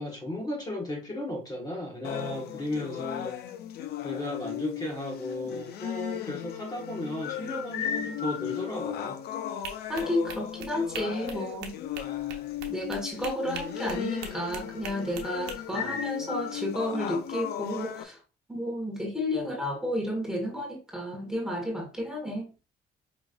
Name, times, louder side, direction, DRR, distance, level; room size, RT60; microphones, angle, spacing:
voice 1, 0.0-3.3 4.0-9.2 15.7-16.0, left 1 dB, 20° left, 1.4 m, -35 dB
sound 1, 2.0-18.0, left 10 dB, 70° left, 0.6 m, -36 dB
sound 2, 9.6-15.6, right 6 dB, 85° right, 0.9 m, -42 dB
voice 2, 9.9-11.7 12.7-18.2 18.5-22.5, left 1 dB, 5° right, 1.4 m, -32 dB
5.2 x 3.0 x 2.5 m
cardioid pair, 110°, 17 cm